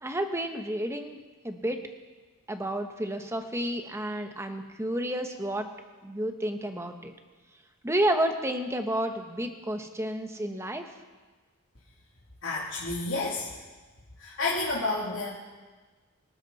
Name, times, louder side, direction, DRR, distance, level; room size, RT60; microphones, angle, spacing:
voice 1, 0.0-1.2 1.4-1.8 2.5-5.7 6.0-7.1 7.8-10.9, right 1 dB, 10° right, 5 dB, 1.1 m, -30 dB
voice 2, 12.4-13.5 14.2-15.3, left 3 dB, 60° left, -7 dB, 3.0 m, -30 dB
25.0 x 13.5 x 4.2 m, 1.3 s
head